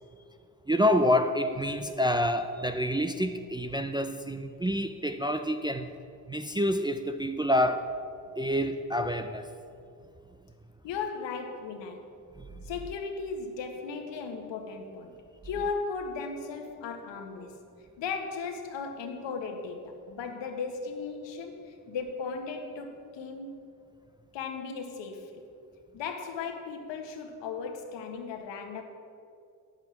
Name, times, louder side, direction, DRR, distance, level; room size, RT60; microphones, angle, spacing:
voice 1, 0.7-5.9 6.3-7.9 8.4-9.4, equal, 10° right, 7 dB, 0.5 m, -27 dB
voice 2, 10.8-12.0 12.6-15.1 15.4-17.6 18.0-23.6 24.3-25.3 25.9-28.8, left 5 dB, 65° left, 5 dB, 1.5 m, -36 dB
8.7 x 8.1 x 7.2 m, 2.5 s
hypercardioid pair, 60°, 47 cm